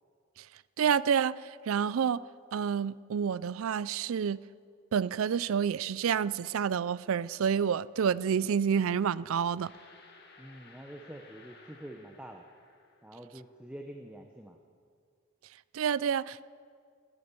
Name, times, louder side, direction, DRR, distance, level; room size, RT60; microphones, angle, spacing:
voice 1, 0.8-2.2 2.5-4.4 4.9-9.7 15.7-16.4, right 7 dB, 75° right, 0.4 m, -29 dB
sound 1, 9.6-13.5, left 3 dB, 50° left, 1.9 m, -57 dB
voice 2, 10.4-12.4 13.0-14.6, right 1 dB, 5° right, 0.7 m, -46 dB
19.0 x 9.9 x 6.8 m
head